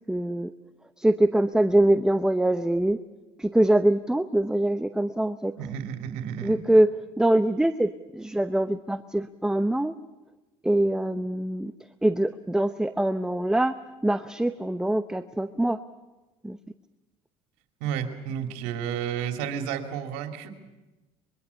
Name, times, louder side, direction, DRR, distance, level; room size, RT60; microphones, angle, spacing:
voice 1, 0.1-0.5 1.0-3.0 3.4-5.5 6.4-6.9 7.2-10.0 10.6-11.7 12.0-15.8 16.4-16.6, right 1 dB, 5° right, 10 dB, 0.8 m, -23 dB
voice 2, 5.6-6.6 17.8-20.5, right 8 dB, 80° right, 4 dB, 2.8 m, -31 dB
24.0 x 23.0 x 7.0 m, 1.1 s
supercardioid pair, 90°, 14 cm